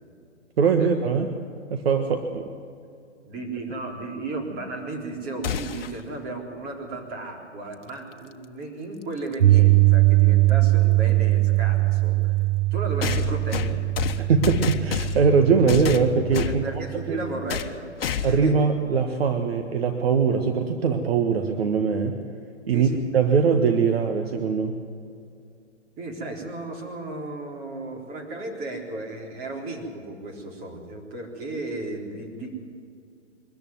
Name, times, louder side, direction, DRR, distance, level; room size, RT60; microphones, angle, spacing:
voice 1, 0.6-1.3 1.7-2.5 14.2-17.2 18.2-22.2 22.7-24.8, right 5 dB, 55° right, 5 dB, 1.6 m, -22 dB
voice 2, 3.2-12.4 12.7-14.2 16.4-18.5 22.7-23.0 26.0-32.5, right 2 dB, 25° right, 1 dB, 3.8 m, -35 dB
sound 1, 5.4-6.0 8.1-8.2 9.3-9.4 13.0-15.3 15.7-16.6 17.5-17.7 18.0-18.5, left 7 dB, 55° left, 1.3 m, -29 dB
Piano, 9.4-17.5, right 19 dB, 80° right, 0.7 m, -21 dB
23.0 x 14.0 x 9.4 m, 2.4 s
figure-of-eight pair, 125°, 36 cm